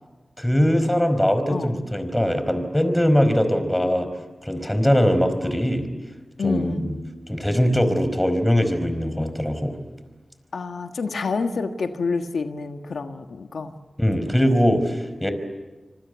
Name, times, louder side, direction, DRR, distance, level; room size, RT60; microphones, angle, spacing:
voice 1, 0.4-4.1 4.4-5.9 6.4-6.9 7.3-9.8 14.0-15.3, equal, 10° left, 10 dB, 4.9 m, -21 dB
voice 2, 6.4-6.8 10.5-13.7, left 4 dB, 90° left, 6 dB, 1.5 m, -28 dB
26.5 x 25.0 x 8.2 m, 1.2 s
cardioid pair, 50°, 0 cm